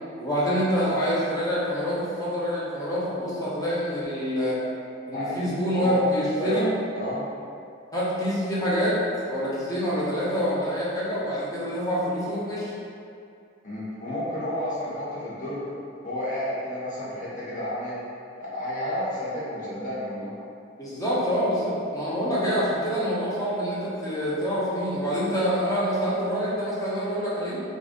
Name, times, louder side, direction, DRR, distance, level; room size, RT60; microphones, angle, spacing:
voice 1, 0.2-4.6 5.1-6.7 7.9-9.0 9.3-12.7 20.8-27.6, equal, 20° left, -9 dB, 1.0 m, -26 dB
voice 2, 5.1-6.0 6.4-6.7 6.9-7.2 13.6-15.7 16.0-18.0 18.4-20.3, left 1 dB, 40° left, -9 dB, 1.3 m, -31 dB
4.6 x 2.6 x 3.6 m, 2.4 s
head